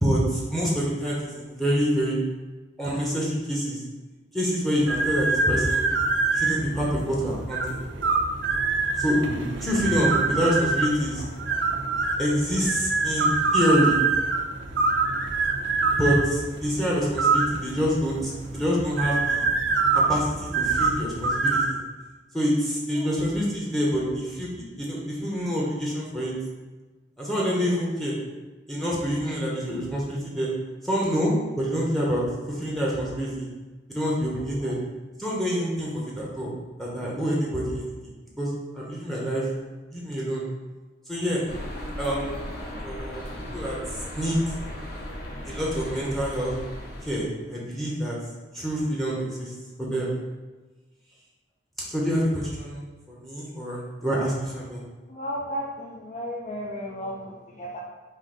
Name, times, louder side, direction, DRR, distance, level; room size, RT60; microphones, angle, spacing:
voice 1, 0.0-2.1 2.8-3.8 4.3-5.9 6.3-7.8 9.0-9.2 9.6-11.2 12.2-14.0 16.0-19.4 20.1-21.8 22.3-24.5 24.8-26.3 27.2-28.1 28.7-30.5 30.8-33.5 33.9-34.7 35.2-36.5 36.8-37.9 38.4-39.5 39.9-40.4 41.1-41.4 42.0-42.4 42.8-43.2 43.5-43.8 44.1-44.4 45.4-46.5 47.0-48.1 48.5-49.5 49.8-50.1 51.9-54.8, equal, ahead, -5 dB, 0.7 m, -26 dB
sound 1, 4.8-21.7, right 3 dB, 85° right, 0.5 m, -25 dB
sound 2, 41.5-47.2, left 1 dB, 60° left, 0.7 m, -36 dB
voice 2, 55.1-57.8, equal, 40° left, -2 dB, 0.4 m, -34 dB
3.8 x 2.6 x 3.8 m, 1.2 s
head